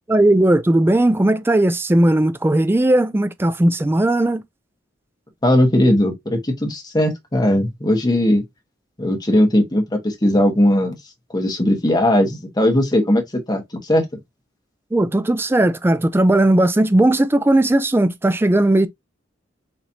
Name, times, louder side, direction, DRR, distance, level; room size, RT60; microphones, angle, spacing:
voice 1, 0.1-4.4 14.9-18.9, right 1 dB, 10° right, 0.4 m, -17 dB
voice 2, 5.4-8.4 9.0-11.0 11.3-14.1, left 1 dB, 20° left, 1.2 m, -18 dB
4.1 x 3.0 x 2.7 m
head